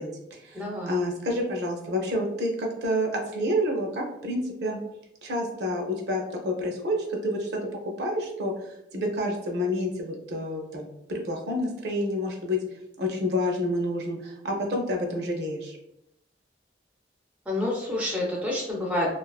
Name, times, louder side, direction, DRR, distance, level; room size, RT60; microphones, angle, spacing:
voice 1, 0.0-4.8 5.2-12.6 13.0-15.8, left 1 dB, 65° right, 1 dB, 0.5 m, -29 dB
voice 2, 0.5-1.0 17.5-19.2, left 1 dB, 10° right, -2 dB, 0.3 m, -28 dB
2.4 x 2.3 x 2.3 m, 0.82 s
head